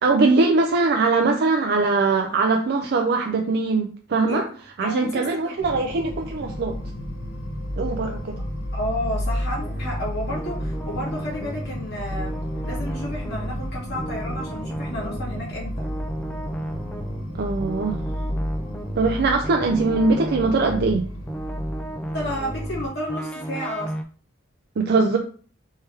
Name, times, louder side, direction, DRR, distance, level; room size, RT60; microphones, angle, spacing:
voice 1, 0.0-4.4 4.8-6.7 7.8-8.4 17.3-18.0 19.0-21.0 24.8-25.2, right 3 dB, 50° right, 3 dB, 0.4 m, -21 dB
voice 2, 4.8-5.5 8.7-12.3 12.6-15.8 22.1-23.9, equal, 55° left, -5 dB, 2.3 m, -31 dB
sound 1, 5.6-22.9, equal, 70° left, 1.1 m, -32 dB
sound 2, 9.6-24.0, right 1 dB, 5° left, 0.4 m, -34 dB
4.4 x 3.4 x 3.3 m, 0.42 s
head